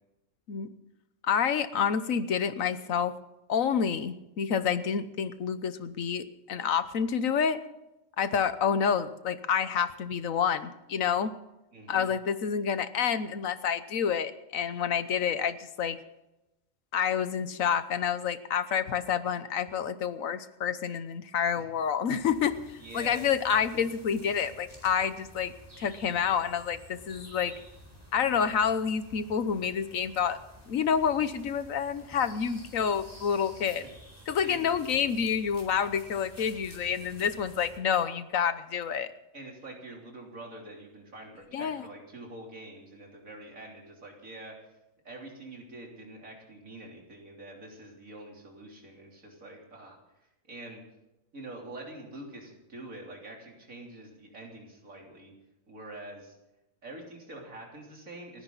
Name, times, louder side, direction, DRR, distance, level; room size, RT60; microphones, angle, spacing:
voice 1, 1.2-3.1 3.5-7.6 8.2-11.3 11.9-16.0 16.9-27.5 28.1-30.4 30.7-33.8 34.3-39.1 41.5-41.9, left 7 dB, 85° left, 12 dB, 1.4 m, -28 dB
voice 2, 11.7-12.1 21.6-21.7 22.8-23.2 34.4-34.9 39.3-44.5 45.0-50.0 50.5-50.8 51.3-55.3 55.7-56.4 56.8-58.4, right 2 dB, 85° right, 0 dB, 3.9 m, -45 dB
sound 1, 22.2-37.8, equal, 10° left, 4.2 m, -52 dB
29.5 x 10.5 x 4.0 m, 0.94 s
omnidirectional pair, 1.4 m